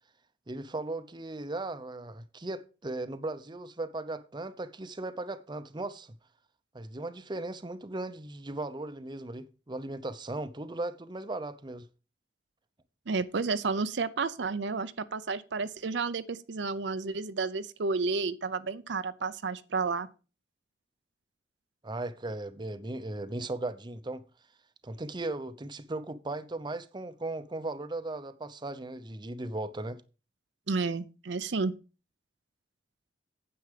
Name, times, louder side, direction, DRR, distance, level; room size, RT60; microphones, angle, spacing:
voice 1, 0.5-6.2 6.7-11.9 21.8-24.2 24.8-30.0, right 2 dB, 25° right, 0.7 m, -37 dB
voice 2, 13.1-20.1 30.7-31.7, right 4 dB, 70° right, 0.6 m, -31 dB
9.6 x 7.8 x 5.0 m
head